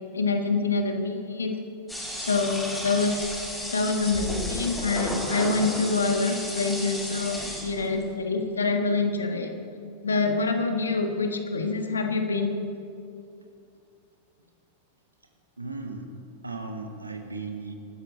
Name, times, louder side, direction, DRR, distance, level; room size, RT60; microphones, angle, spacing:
voice 1, 0.1-1.5 2.2-3.3 3.7-9.5 10.0-12.6, left 3 dB, 75° left, 5 dB, 1.6 m, -26 dB
sound 1, 1.9-8.0, equal, 5° left, 4.9 m, -33 dB
voice 2, 15.6-16.1 16.4-17.7, right 3 dB, 80° right, 4 dB, 1.8 m, -36 dB
24.5 x 13.0 x 3.9 m, 2.5 s
figure-of-eight pair, 90°, 0 cm